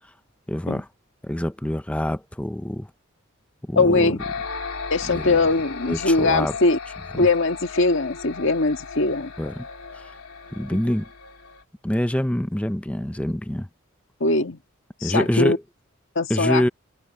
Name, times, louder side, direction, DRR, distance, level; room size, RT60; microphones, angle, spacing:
voice 1, 0.5-0.9 1.2-2.9 3.6-4.1 5.1-5.4 5.9-6.6 7.2-7.3 9.4-9.7 9.9-10.1 10.5-11.1 11.8-13.7 15.0-15.6 16.3-16.7, left 1 dB, 5° left, 0.5 m, -25 dB
voice 2, 3.8-4.2 4.9-6.8 7.1-9.3 10.7-10.8 14.2-14.6 15.0-15.6 16.2-16.6, left 3 dB, 60° left, 1.8 m, -21 dB
sound 1, 4.2-11.6, left 5 dB, 90° left, 3.1 m, -36 dB
head